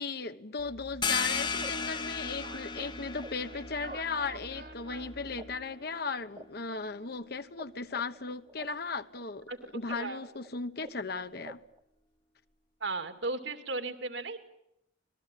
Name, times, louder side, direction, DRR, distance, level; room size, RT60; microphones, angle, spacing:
voice 1, 0.0-11.6, left 4 dB, 55° left, 1.1 m, -37 dB
sound 1, 0.6-5.7, right 2 dB, 55° right, 2.0 m, -48 dB
sound 2, 1.0-6.4, left 5 dB, 25° left, 1.2 m, -36 dB
sound 3, 1.6-4.1 4.4-7.6 7.9-11.8, right 1 dB, 25° right, 1.3 m, -49 dB
voice 2, 9.9-10.2 12.8-14.4, right 3 dB, 75° right, 2.6 m, -35 dB
26.0 x 20.0 x 9.2 m
head